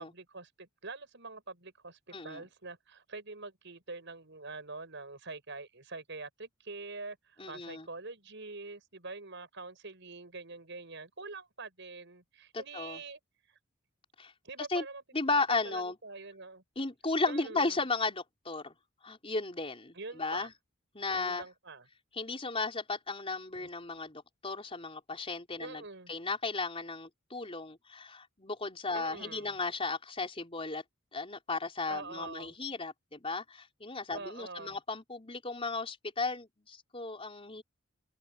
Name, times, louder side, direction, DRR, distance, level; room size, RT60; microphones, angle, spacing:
voice 1, 0.0-13.2 13.5-13.6 14.4-15.0 15.5-16.6 17.3-17.8 19.9-20.5 21.1-21.9 23.6-23.7 25.6-26.1 28.9-29.5 31.9-32.6 34.1-34.8, right 3 dB, 60° right, 7.3 m, -45 dB
voice 2, 2.1-2.4 7.4-7.9 12.5-13.0 14.2-14.3 14.7-14.8 15.1-16.0 16.8-18.7 19.0-20.5 20.9-21.4 22.2-25.8 26.1-30.8 31.1-37.6, left 3 dB, 30° left, 4.4 m, -35 dB
open air
head